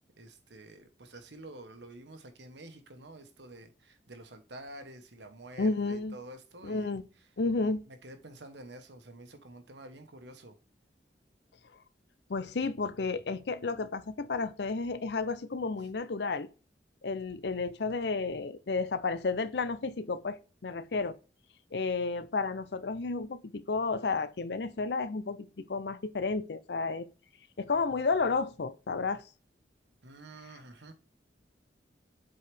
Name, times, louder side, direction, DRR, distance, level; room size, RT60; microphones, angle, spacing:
voice 1, 0.2-7.3 7.7-10.6 15.8-15.9 30.0-30.9, right 1 dB, 75° right, 1.2 m, -49 dB
voice 2, 5.6-6.2 6.6-7.0 7.4-7.8 12.3-16.5 17.0-21.1 21.7-27.1 27.6-29.2, left 4 dB, 70° left, 0.6 m, -32 dB
7.8 x 4.6 x 3.4 m
head